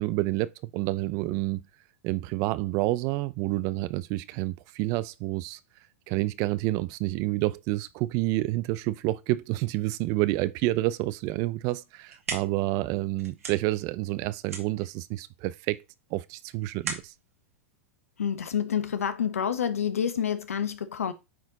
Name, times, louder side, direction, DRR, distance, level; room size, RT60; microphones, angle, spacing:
voice 1, 0.0-1.6 2.0-5.6 6.1-15.8 16.1-17.1, right 18 dB, 45° right, 0.6 m, -29 dB
sound 1, 11.8-18.7, right 5 dB, 80° right, 2.3 m, -41 dB
voice 2, 18.2-21.1, left 8 dB, 85° left, 1.1 m, -28 dB
9.3 x 4.2 x 4.0 m
hypercardioid pair, 105°, 8 cm